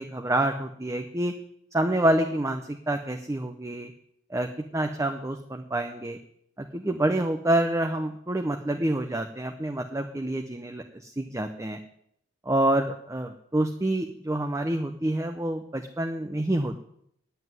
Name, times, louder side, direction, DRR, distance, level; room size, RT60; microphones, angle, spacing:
voice 1, 0.0-1.3 1.7-3.9 4.3-6.2 6.6-11.8 12.5-16.8, right 1 dB, 15° right, 4 dB, 0.6 m, -27 dB
9.7 x 7.9 x 9.4 m, 0.72 s
head